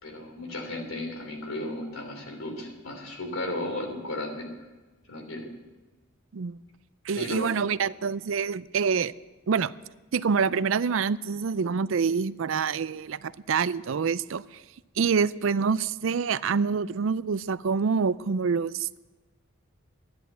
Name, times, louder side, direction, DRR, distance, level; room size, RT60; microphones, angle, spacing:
voice 1, 0.0-4.7 5.1-5.5 7.1-7.5, left 1 dB, 85° left, 3.3 m, -35 dB
voice 2, 7.1-9.1 9.5-9.7 10.1-14.4 15.0-18.9, right 5 dB, 75° right, 0.4 m, -26 dB
13.0 x 10.5 x 8.1 m
head